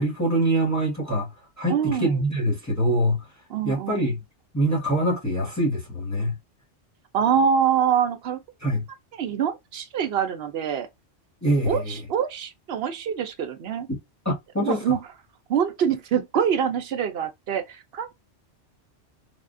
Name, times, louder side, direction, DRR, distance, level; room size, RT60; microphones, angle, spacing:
voice 1, 0.0-3.3 3.6-4.2 4.5-6.4 8.6-8.9 11.4-12.0 14.2-14.8, right 1 dB, 15° left, 0.9 m, -24 dB
voice 2, 1.7-2.2 3.5-4.1 7.1-8.4 9.2-10.9 11.6-13.9 14.6-15.0 15.5-18.1, right 8 dB, 65° right, 0.8 m, -25 dB
3.5 x 2.4 x 2.4 m
omnidirectional pair, 1.2 m